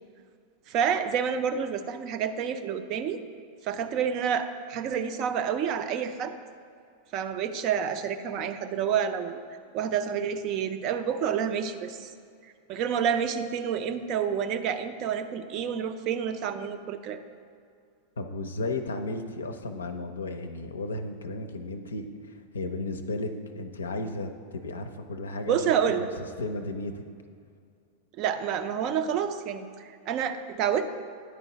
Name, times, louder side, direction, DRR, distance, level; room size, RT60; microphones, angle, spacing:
voice 1, 0.7-3.2 3.6-6.3 7.1-9.4 9.7-12.1 12.7-17.2 25.5-26.1 28.2-30.9, right 8 dB, 40° right, 9 dB, 0.4 m, -28 dB
voice 2, 18.2-22.1 22.5-27.0, left 2 dB, 75° left, 7 dB, 0.5 m, -34 dB
10.0 x 4.4 x 3.9 m, 2.3 s
figure-of-eight pair, 90°, 0 cm